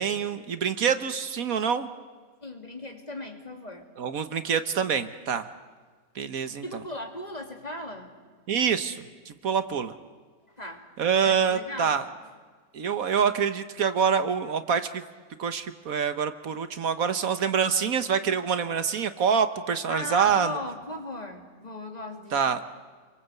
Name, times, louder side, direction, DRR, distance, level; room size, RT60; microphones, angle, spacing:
voice 1, 0.0-1.9 4.0-5.5 6.1-6.6 8.5-9.9 11.0-12.0 12.7-15.0 15.4-20.6 22.3-22.6, right 7 dB, 70° right, 10 dB, 1.5 m, -26 dB
voice 2, 2.4-3.9 6.6-8.1 10.6-10.8 11.2-12.0 19.9-22.4, left 2 dB, 25° left, 3 dB, 3.1 m, -37 dB
30.0 x 23.0 x 8.3 m, 1.5 s
omnidirectional pair, 1.5 m